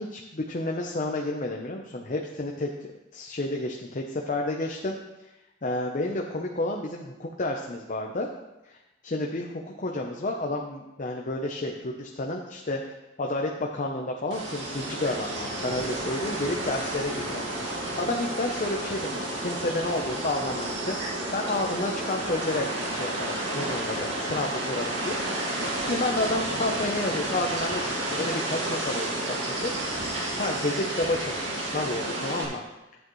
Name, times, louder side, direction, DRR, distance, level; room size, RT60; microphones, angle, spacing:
voice 1, 0.0-2.7 3.1-5.0 5.6-8.3 8.6-8.8 9.0-12.8 13.2-17.4 17.7-29.2 29.5-29.7 30.4-32.6, left 2 dB, 45° left, 1 dB, 0.7 m, -30 dB
sound 1, 14.3-32.4, right 1 dB, 85° right, 2.1 m, -31 dB
11.5 x 8.3 x 3.1 m, 1.0 s
head